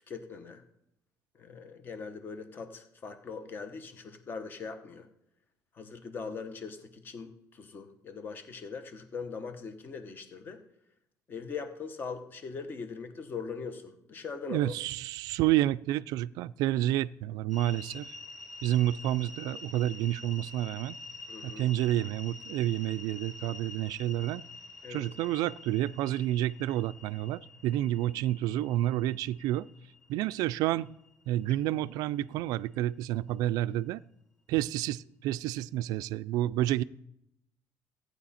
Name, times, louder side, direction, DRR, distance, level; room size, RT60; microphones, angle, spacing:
voice 1, 0.1-0.6 1.3-5.1 5.7-10.6 11.3-14.7 21.3-21.7 24.8-25.0, left 5 dB, 30° left, 1.1 m, -41 dB
voice 2, 14.5-18.1 18.6-21.0 21.4-24.4 24.9-29.7 30.1-30.9 31.3-34.0 34.5-36.8, right 14 dB, 85° right, 0.3 m, -29 dB
sound 1, 17.5-31.6, left 3 dB, ahead, 1.2 m, -47 dB
14.5 x 9.3 x 4.2 m
cardioid pair, 160°, 6 cm